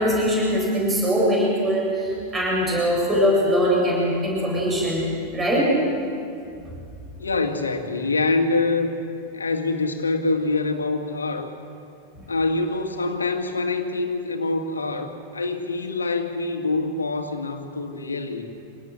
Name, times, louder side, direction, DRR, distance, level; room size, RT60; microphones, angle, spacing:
voice 1, 0.0-5.1 5.3-5.8, equal, 15° right, -4 dB, 8.0 m, -21 dB
voice 2, 7.2-8.9 9.3-11.5 12.3-18.5, left 3 dB, 75° left, 5 dB, 2.2 m, -25 dB
27.0 x 18.5 x 8.1 m, 2.5 s
figure-of-eight pair, 90°, 0 cm